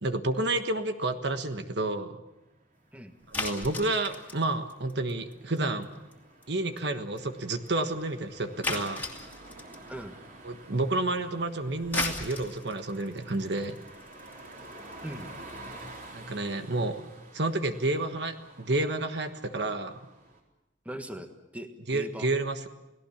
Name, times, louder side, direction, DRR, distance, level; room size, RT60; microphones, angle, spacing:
voice 1, 0.0-2.2 3.3-5.9 6.5-9.0 10.4-13.8 16.1-17.0 17.3-20.0 21.9-22.7, right 2 dB, 60° right, 8 dB, 1.4 m, -30 dB
sound 1, 2.3-20.4, right 2 dB, 45° right, 4.0 m, -50 dB
sound 2, 3.3-5.6 5.8-6.1 6.4-6.5 6.8-6.9 7.2-7.3 7.7-7.8 8.6-9.9 11.7-16.0, left 3 dB, 10° left, 2.6 m, -36 dB
voice 2, 20.8-22.3, equal, 10° right, 6 dB, 1.6 m, -40 dB
29.5 x 18.0 x 7.2 m, 0.99 s
head